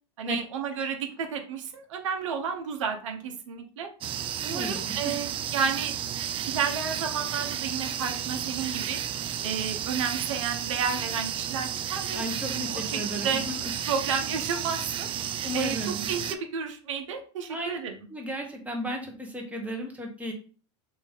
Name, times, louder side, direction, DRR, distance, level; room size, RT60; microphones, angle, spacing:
voice 1, 0.2-3.9 4.4-5.9 6.5-9.0 9.4-12.2 12.5-13.4 13.9-15.1 15.5-17.9, right 6 dB, 80° right, 6 dB, 0.8 m, -31 dB
sound 1, 4.0-16.4, right 9 dB, 35° right, 0.4 m, -32 dB
voice 2, 4.4-4.8 12.1-13.7 15.4-16.1 17.5-17.8 18.1-20.3, equal, 10° right, 1 dB, 1.2 m, -34 dB
3.2 x 2.7 x 3.5 m, 0.39 s
hypercardioid pair, 100°, 16 cm